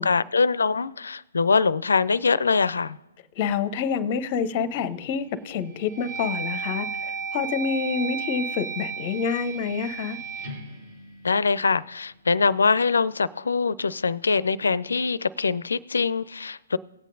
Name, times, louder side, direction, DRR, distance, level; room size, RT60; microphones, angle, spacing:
voice 1, 0.0-3.0 11.2-16.8, left 4 dB, 70° left, 20 dB, 0.4 m, -23 dB
voice 2, 3.4-10.2, left 6 dB, 35° left, 14 dB, 0.7 m, -27 dB
sound 1, 4.7-5.2 5.7-11.8, right 5 dB, 45° right, 2.1 m, -34 dB
18.5 x 8.2 x 2.6 m, 0.97 s
figure-of-eight pair, 130°, 0 cm